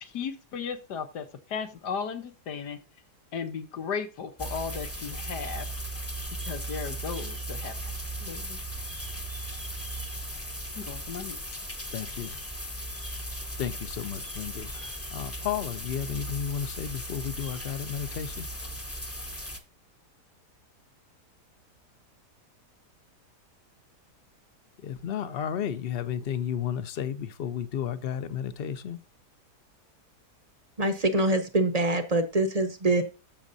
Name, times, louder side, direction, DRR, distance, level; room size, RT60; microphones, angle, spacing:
voice 1, 0.0-2.8 3.3-5.6 6.5-7.7 8.2-8.6 10.8-11.4, left 6 dB, 85° left, 1.7 m, -35 dB
sound 1, 4.4-19.6, right 1 dB, 10° left, 0.8 m, -37 dB
voice 2, 11.9-12.3 13.6-14.7 15.1-18.4 24.8-29.0, left 9 dB, 50° left, 0.7 m, -33 dB
voice 3, 30.8-33.0, right 2 dB, 30° right, 0.8 m, -24 dB
14.5 x 6.3 x 2.7 m
omnidirectional pair, 1.7 m